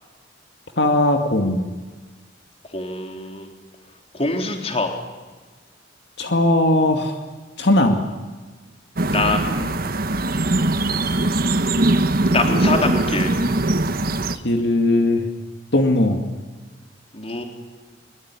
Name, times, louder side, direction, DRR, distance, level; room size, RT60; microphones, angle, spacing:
voice 1, 0.8-1.7 6.2-7.2 7.6-8.0 14.3-15.3 15.7-16.2, left 1 dB, 65° left, 4 dB, 2.3 m, -18 dB
voice 2, 2.7-3.5 4.1-5.0 9.1-9.8 12.2-13.3 17.1-17.4, left 2 dB, 35° left, 3 dB, 3.8 m, -24 dB
sound 1, 9.0-14.4, right 2 dB, 55° right, 1.4 m, -21 dB
23.5 x 23.0 x 9.8 m, 1.3 s
head